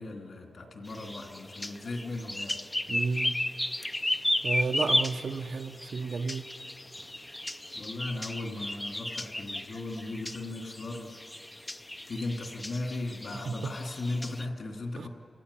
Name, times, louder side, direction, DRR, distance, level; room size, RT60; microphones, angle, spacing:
voice 1, 0.0-2.6 7.7-11.2 12.1-15.1, left 2 dB, 55° left, 2 dB, 3.1 m, -37 dB
sound 1, 0.8-14.4, left 1 dB, 10° left, 0.6 m, -34 dB
voice 2, 2.9-3.4 4.4-6.4 13.5-13.7 15.0-15.1, right 4 dB, 55° right, 8 dB, 0.8 m, -32 dB
28.5 x 16.0 x 10.0 m, 2.5 s
wide cardioid pair, 175°, 0 cm